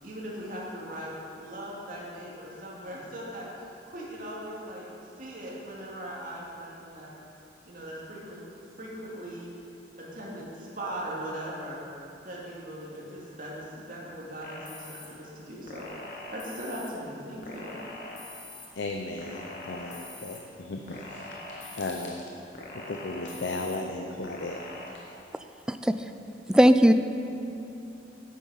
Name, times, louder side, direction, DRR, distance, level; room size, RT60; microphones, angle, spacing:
voice 1, 0.0-1.1 1.4-4.9 5.2-7.1 7.6-8.5 8.8-9.5 10.0-11.8 12.2-15.9 16.3-17.8, right 1 dB, 50° right, -5 dB, 2.4 m, -39 dB
sound 1, 14.4-15.1 15.7-16.9 17.4-18.7 19.2-20.4 20.9-22.1 22.5-23.8 24.2-24.9, left 2 dB, 50° left, 1.6 m, -43 dB
voice 2, 18.8-22.3 22.7-25.1, left 2 dB, 75° left, 2 dB, 0.6 m, -36 dB
voice 3, 26.5-26.9, equal, 5° right, 9 dB, 0.3 m, -18 dB
9.3 x 8.5 x 5.7 m, 2.9 s
head